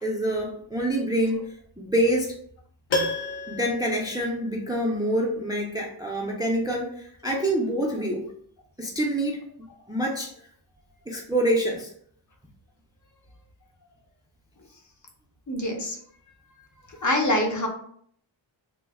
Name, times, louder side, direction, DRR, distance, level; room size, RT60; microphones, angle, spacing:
voice 1, 0.0-1.4 1.8-2.3 3.5-8.2 8.8-9.4 9.9-10.3 11.1-11.9, right 1 dB, 10° right, -1 dB, 0.3 m, -26 dB
Piano, 2.9-5.0 5.3-5.4, left 2 dB, 75° left, 0.8 m, -31 dB
voice 2, 15.5-16.0 16.9-17.7, left 1 dB, 40° left, 2 dB, 0.6 m, -25 dB
3.0 x 2.0 x 3.4 m, 0.63 s
wide cardioid pair, 140°, 47 cm